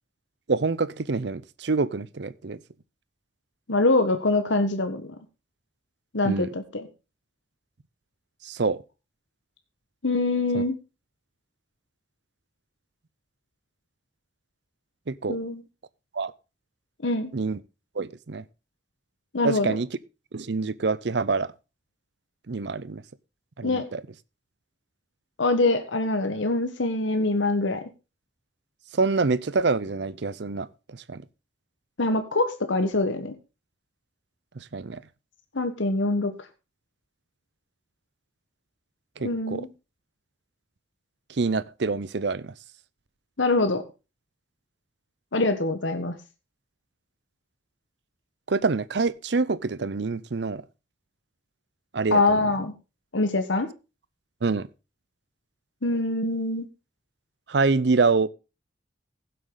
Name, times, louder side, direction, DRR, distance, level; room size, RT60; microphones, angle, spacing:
voice 1, 0.5-2.6 6.2-6.5 8.4-8.8 10.5-10.6 15.1-15.4 16.1-16.3 17.3-17.6 18.0-18.4 19.4-19.9 20.3-21.5 22.5-23.0 23.6-24.0 28.9-30.7 30.9-31.2 34.6-35.0 39.2-39.7 41.4-42.5 48.5-50.6 51.9-52.4 54.4-54.7 57.5-58.3, right 4 dB, 65° right, 0.6 m, -26 dB
voice 2, 3.7-5.1 6.1-6.9 10.0-10.8 15.3-15.6 17.0-17.3 19.3-19.8 23.6-23.8 25.4-27.8 32.0-33.3 35.5-36.3 39.2-39.7 43.4-43.8 45.3-46.1 52.1-52.7 53.1-53.7 55.8-56.7, left 2 dB, 80° left, 1.4 m, -24 dB
16.0 x 7.8 x 3.8 m
head